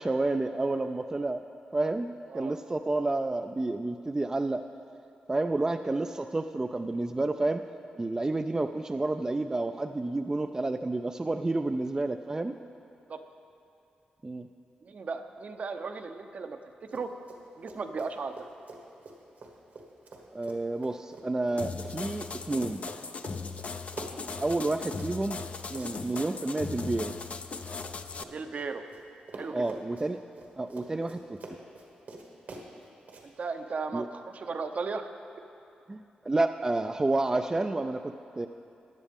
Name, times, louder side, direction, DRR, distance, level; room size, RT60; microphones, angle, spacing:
voice 1, 0.0-1.4 1.7-4.6 5.3-7.6 7.9-12.6 14.2-14.5 20.3-22.8 24.4-27.2 29.5-30.2 30.6-31.4 33.9-34.1 35.9-38.5, right 2 dB, 20° right, 7 dB, 0.4 m, -30 dB
voice 2, 14.8-16.6 16.9-17.1 17.6-18.5 28.2-28.8 29.4-29.7 33.4-35.1, right 4 dB, 55° right, 7 dB, 0.7 m, -36 dB
Run, 16.9-17.4 17.7-29.0 29.3-33.2, right 3 dB, 75° right, 1.6 m, -47 dB
sound 1, 21.6-28.2, left 4 dB, 50° left, 0.5 m, -38 dB
15.5 x 10.5 x 3.6 m, 2.7 s
cardioid pair, 80°, 3 cm